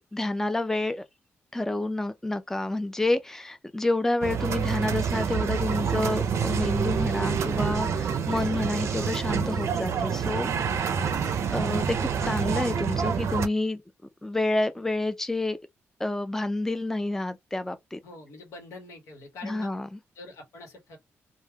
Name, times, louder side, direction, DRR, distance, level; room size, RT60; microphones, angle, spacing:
voice 1, 0.1-1.0 1.5-10.5 11.5-13.8 14.2-15.6 16.0-18.0 19.4-19.9, left 2 dB, 10° left, 0.4 m, -29 dB
sound 1, 4.2-13.5, right 6 dB, 70° right, 0.4 m, -27 dB
voice 2, 18.0-19.7 20.1-21.0, left 3 dB, 85° left, 1.0 m, -44 dB
3.2 x 2.1 x 2.2 m
cardioid pair, 70°, 5 cm